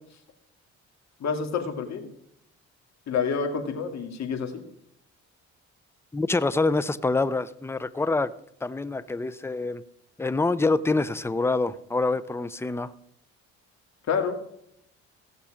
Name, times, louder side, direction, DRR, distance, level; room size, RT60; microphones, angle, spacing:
voice 1, 1.2-2.1 3.1-4.6 14.1-14.4, left 6 dB, 65° left, 2.3 m, -28 dB
voice 2, 6.1-8.3 8.6-9.8 10.2-12.9, left 3 dB, 10° left, 0.6 m, -26 dB
16.5 x 6.8 x 5.0 m
cardioid pair, 90°, 30 cm